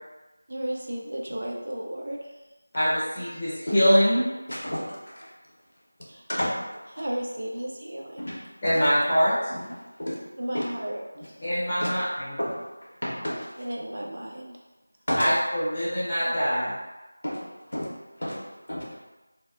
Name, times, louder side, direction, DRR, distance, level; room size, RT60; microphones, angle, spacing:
voice 1, 0.5-2.4 6.1-6.2 6.9-8.4 10.4-11.3 13.6-14.6, right 1 dB, 40° right, -2 dB, 0.3 m, -34 dB
voice 2, 2.7-4.2 8.6-9.4 11.4-12.3 15.2-16.7, equal, 15° left, -13 dB, 0.8 m, -23 dB
voice 3, 4.5-5.3 6.0-6.8 8.2-8.4 8.6-8.8 9.5-10.2 10.5-10.6 11.8-11.9 12.4-12.6 13.0-13.6 15.1-15.3 17.2-17.4 17.7-17.9 18.2-18.4 18.7-18.9, equal, 75° left, -5 dB, 0.8 m, -31 dB
2.7 x 2.1 x 2.3 m, 1.1 s
figure-of-eight pair, 175°, 0 cm